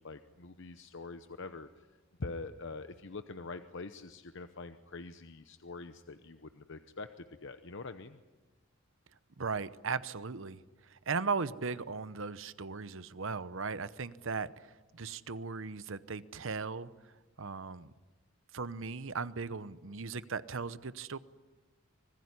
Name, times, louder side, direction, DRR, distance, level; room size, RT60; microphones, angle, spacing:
voice 1, 0.0-1.9 2.2-8.2, left 3 dB, 60° left, 9 dB, 0.9 m, -44 dB
voice 2, 9.4-10.6 10.9-16.9 17.4-17.9 18.5-21.2, right 4 dB, 65° right, 15 dB, 0.9 m, -37 dB
25.5 x 20.5 x 9.7 m, 1.2 s
head